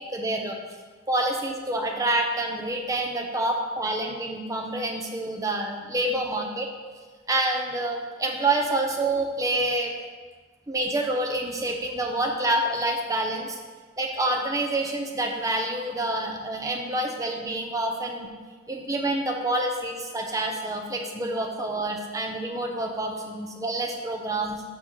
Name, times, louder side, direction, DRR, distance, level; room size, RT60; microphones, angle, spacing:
voice 1, 0.1-0.6 1.1-6.7 7.3-9.9 10.7-13.6 14.0-18.3 18.7-24.6, right 1 dB, 15° right, 1 dB, 0.7 m, -27 dB
6.2 x 5.9 x 3.9 m, 1.4 s
head